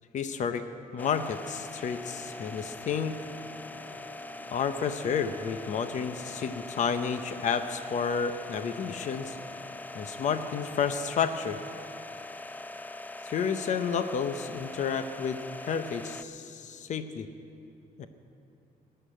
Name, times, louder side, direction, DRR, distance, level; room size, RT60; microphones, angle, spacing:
voice 1, 0.1-0.7 0.9-3.1 4.5-9.4 9.9-11.6 13.2-17.3 18.0-18.1, left 6 dB, 55° left, 9 dB, 0.7 m, -31 dB
sound 1, 1.0-16.2, left 2 dB, 10° left, 0.3 m, -42 dB
sound 2, 1.9-10.4, right 1 dB, 75° left, 4.0 m, -53 dB
19.5 x 6.7 x 8.9 m, 2.7 s
cardioid pair, 140°, 15 cm